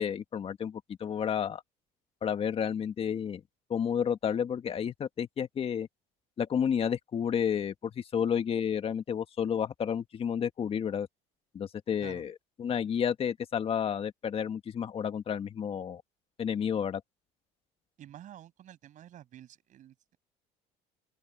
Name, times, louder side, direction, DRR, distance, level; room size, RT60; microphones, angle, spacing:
voice 1, 0.0-1.6 2.2-3.4 3.7-5.9 6.4-11.1 11.5-16.0 16.4-17.0, left 8 dB, 35° left, 1.7 m, -31 dB
voice 2, 18.0-20.2, right 11 dB, 50° right, 7.2 m, -50 dB
open air
cardioid pair, 110°, 16 cm